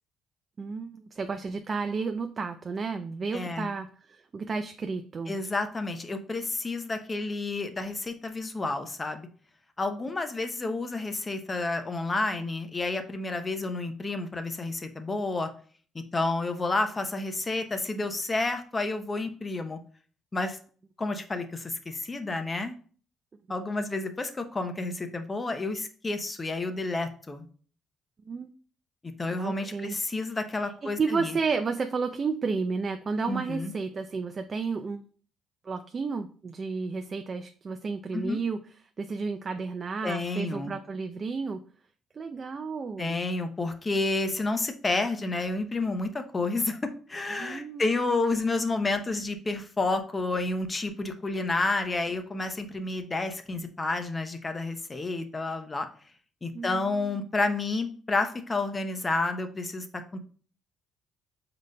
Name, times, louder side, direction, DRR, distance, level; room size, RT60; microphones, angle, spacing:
voice 1, 0.6-5.4 28.3-28.5 29.4-30.0 30.6-35.0 35.6-38.6 39.0-41.6 42.1-43.2 47.3-47.8 56.5-57.1, right 4 dB, 40° right, 7 dB, 0.4 m, -32 dB
voice 2, 3.3-3.7 5.3-9.3 9.8-15.5 16.1-19.8 20.3-20.6 21.0-22.7 23.5-27.5 29.2-31.4 33.3-33.7 38.1-38.4 40.0-40.8 43.0-55.9 56.4-59.8 60.1-60.2, left 3 dB, 25° left, 8 dB, 0.7 m, -30 dB
4.9 x 3.9 x 2.2 m, 0.43 s
supercardioid pair, 80°, 0 cm